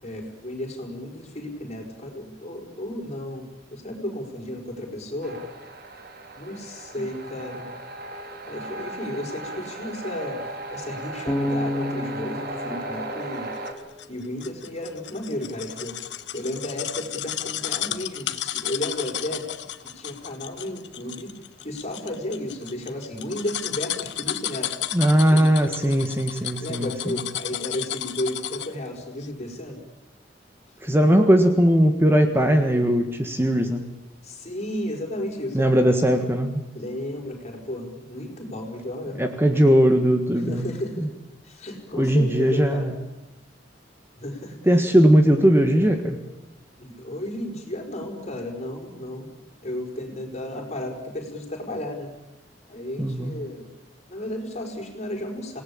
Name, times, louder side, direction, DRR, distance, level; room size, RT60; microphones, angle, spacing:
voice 1, 0.0-5.4 6.4-7.7 8.5-10.4 10.7-13.5 14.1-16.0 16.3-19.5 19.9-21.3 21.6-24.8 25.1-25.4 25.8-26.0 26.6-29.8 34.2-35.9 36.7-39.2 40.5-41.1 41.4-42.9 44.2-44.6 46.8-49.3 49.6-52.1 52.7-53.7 54.1-55.6, left 1 dB, 40° left, 1 dB, 5.4 m, -33 dB
sound 1, 5.2-13.7, right 1 dB, 55° right, 2.9 m, -36 dB
Bass guitar, 11.3-14.3, left 1 dB, 5° left, 2.8 m, -31 dB
sound 2, 13.7-28.8 29.2-29.3, left 12 dB, 70° left, 1.1 m, -33 dB
voice 2, 24.9-27.2 30.8-33.8 35.5-36.6 39.2-40.6 41.0-41.1 41.9-42.9 44.6-46.2 53.0-53.3, equal, 15° right, 6 dB, 1.6 m, -19 dB
27.0 x 18.5 x 8.7 m, 0.96 s
head